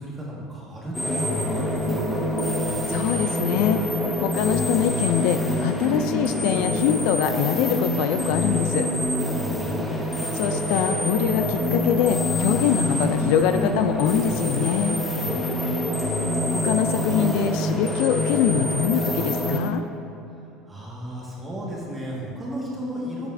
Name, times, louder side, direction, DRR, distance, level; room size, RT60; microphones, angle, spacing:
voice 1, 0.0-2.2 9.3-9.8 15.2-15.9 20.6-23.3, equal, 10° right, -5 dB, 1.7 m, -34 dB
sound 1, 0.9-19.6, left 1 dB, 5° left, 0.8 m, -25 dB
voice 2, 2.9-3.8 4.2-8.9 10.3-15.0 16.5-19.8, left 10 dB, 60° left, 9 dB, 0.3 m, -24 dB
11.0 x 7.2 x 2.6 m, 2.8 s
cardioid pair, 165°, 0 cm